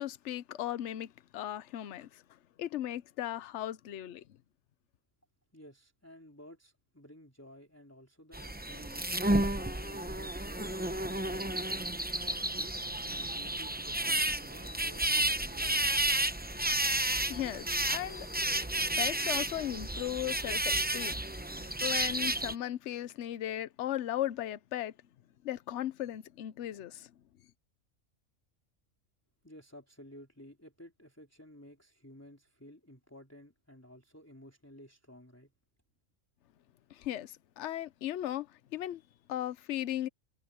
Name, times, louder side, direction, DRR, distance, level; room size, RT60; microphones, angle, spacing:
voice 1, 0.0-2.2 2.6-4.2 17.3-18.3 19.0-21.2 21.6-24.9 25.4-27.1 36.9-39.0 39.3-40.1, left 12 dB, 60° left, 1.0 m, -37 dB
voice 2, 5.5-9.1 9.8-16.0 29.4-35.5, left 1 dB, 10° left, 3.4 m, -54 dB
sound 1, 8.3-22.5, right 1 dB, 10° right, 0.6 m, -32 dB
omnidirectional pair, 1.4 m